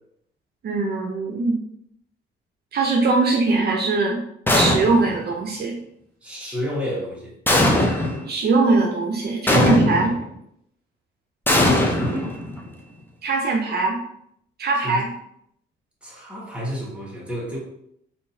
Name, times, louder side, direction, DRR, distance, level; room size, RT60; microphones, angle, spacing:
voice 1, 0.6-1.6 2.7-4.2 4.5-5.8 8.3-10.2 13.2-14.0 14.6-15.1, right 3 dB, 55° right, 0 dB, 0.6 m, -21 dB
sound 1, 4.5-5.2 7.5-8.3 9.5-10.2 11.5-12.7, left 1 dB, 10° left, 0.6 m, -20 dB
voice 2, 6.2-7.3 11.9-12.3 14.8-15.0 16.0-17.6, equal, 5° right, -5 dB, 1.4 m, -30 dB
3.6 x 2.7 x 2.7 m, 0.73 s
cardioid pair, 90°, 20 cm